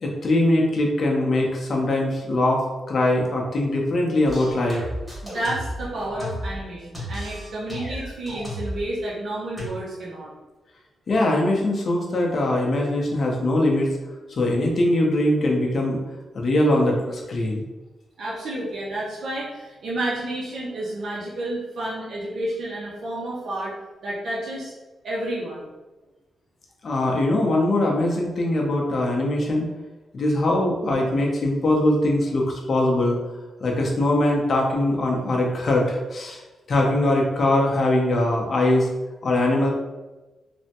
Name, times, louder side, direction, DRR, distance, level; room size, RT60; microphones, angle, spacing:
voice 1, 0.0-4.8 11.1-13.9 14.3-16.0 16.3-17.6 26.8-29.7 30.1-33.2 33.6-36.4 36.7-38.9 39.2-39.7, left 1 dB, 50° left, -1 dB, 0.6 m, -22 dB
sound 1, 4.2-6.6 6.9-8.8 9.6-9.7, equal, 10° right, 1.1 m, -33 dB
voice 2, 5.2-10.3 18.2-23.7 24.0-24.7 25.0-25.7, right 1 dB, 65° right, -6 dB, 0.6 m, -30 dB
3.2 x 2.1 x 2.8 m, 1.1 s
wide cardioid pair, 125°, 0 cm